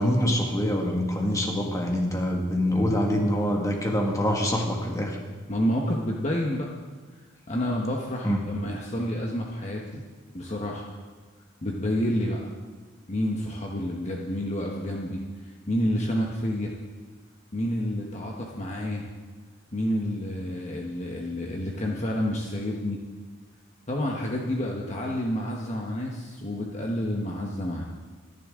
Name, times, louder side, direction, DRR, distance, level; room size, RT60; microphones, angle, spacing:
voice 1, 0.0-5.2 8.2-8.4, equal, 15° left, 1 dB, 1.9 m, -25 dB
voice 2, 5.5-6.7 7.5-10.0 10.3-10.9 11.6-12.4 13.1-16.7 17.5-19.0 19.7-23.0 23.9-27.8, equal, 35° left, -1 dB, 1.2 m, -29 dB
24.0 x 11.0 x 3.8 m, 1.4 s
head